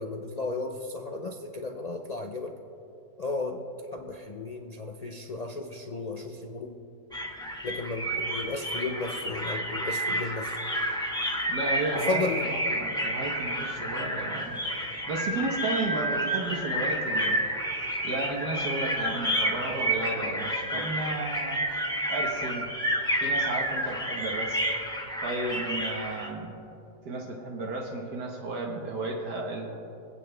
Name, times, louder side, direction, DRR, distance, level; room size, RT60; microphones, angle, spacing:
voice 1, 0.0-2.5 3.2-3.7 3.9-6.8 7.6-10.6 11.9-12.5, left 3 dB, 65° left, 2 dB, 0.4 m, -34 dB
sound 1, 7.1-26.3, right 1 dB, 5° left, 1.7 m, -30 dB
voice 2, 11.5-14.6 15.1-17.4 18.0-21.6 22.1-22.7 23.2-24.6 25.2-26.6 27.1-29.7, right 2 dB, 80° right, 0 dB, 1.8 m, -33 dB
25.0 x 8.7 x 3.4 m, 2.8 s
omnidirectional pair, 1.7 m